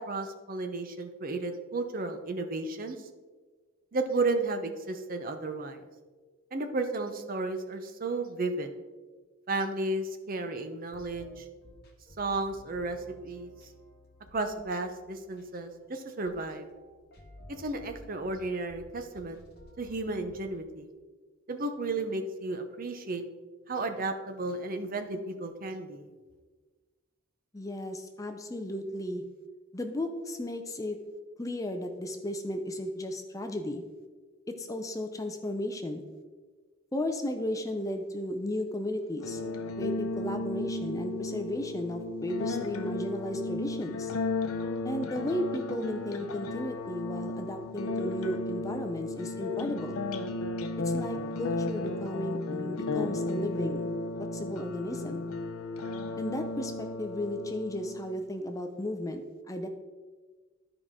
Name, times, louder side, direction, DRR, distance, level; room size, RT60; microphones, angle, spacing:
voice 1, 0.0-3.1 3.9-5.9 6.5-8.7 9.5-11.5 12.2-13.5 14.3-16.7 17.5-19.4 19.8-20.9 21.5-23.2 23.7-26.1, right 2 dB, 40° right, 7 dB, 0.6 m, -33 dB
sound 1, 10.9-20.4, left 1 dB, 50° left, 1.2 m, -54 dB
voice 2, 27.5-29.2 29.7-31.0 31.4-33.8 34.5-36.1 36.9-39.4 39.8-44.1 44.8-50.0 50.8-53.9 54.3-55.2 56.2-59.2 59.5-59.7, left 1 dB, 15° left, 5 dB, 0.4 m, -34 dB
sound 2, 39.2-58.2, left 2 dB, 85° left, 0.6 m, -34 dB
12.5 x 4.9 x 3.6 m, 1.4 s
head